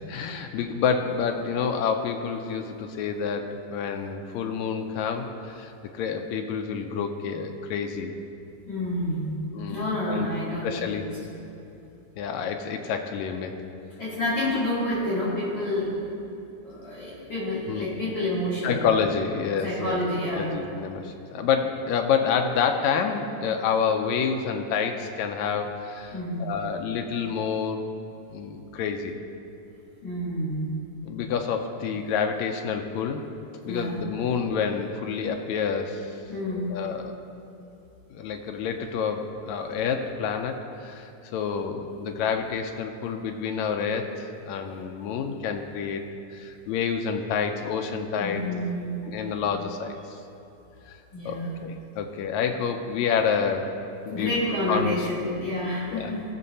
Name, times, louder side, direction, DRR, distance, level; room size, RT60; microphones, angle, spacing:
voice 1, 0.0-8.1 9.5-10.3 10.6-11.1 12.2-13.6 17.7-17.9 18.6-20.0 20.3-27.8 28.3-29.1 31.0-33.2 33.6-36.1 36.7-37.2 38.1-48.4 49.0-50.2 50.9-51.0 51.2-53.7 54.0-54.3 54.7-55.0 55.9-56.1, left 6 dB, 80° left, 5 dB, 1.7 m, -28 dB
voice 2, 8.7-9.4 9.7-11.0 14.0-15.9 16.6-18.8 19.6-20.5 26.1-26.5 30.0-30.7 33.7-34.0 36.3-36.7 48.1-49.0 51.1-51.5 54.1-56.2, left 1 dB, 40° left, -11 dB, 2.9 m, -29 dB
18.0 x 6.6 x 2.8 m, 2.8 s
omnidirectional pair, 3.6 m